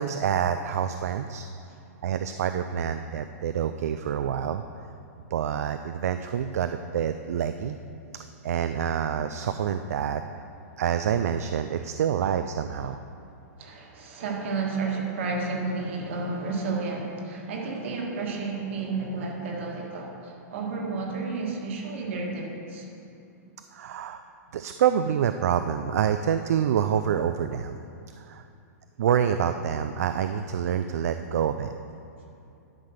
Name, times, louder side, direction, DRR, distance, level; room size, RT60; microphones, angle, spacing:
voice 1, 0.0-1.5 2.0-4.6 5.3-7.8 8.1-10.2 10.8-13.0 23.7-24.2 24.5-27.8 28.3-28.4 29.0-31.7, right 8 dB, 65° right, 9 dB, 0.4 m, -27 dB
voice 2, 13.6-22.9, right 3 dB, 45° right, 0 dB, 1.6 m, -31 dB
11.5 x 5.0 x 5.8 m, 2.6 s
supercardioid pair, 180°, 9 cm